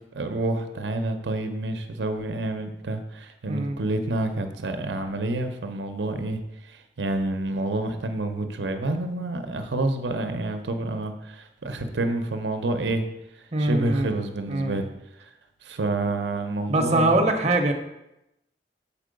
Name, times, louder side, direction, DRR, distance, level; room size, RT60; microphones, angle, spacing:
voice 1, 0.1-13.0 13.3-14.9 15.2-15.3 15.6-17.2, right 2 dB, 85° right, 7 dB, 0.7 m, -28 dB
voice 2, 3.5-3.8 13.5-14.2 14.5-14.8 16.7-17.7, right 2 dB, 40° right, 5 dB, 0.7 m, -23 dB
7.2 x 4.5 x 5.1 m, 0.91 s
head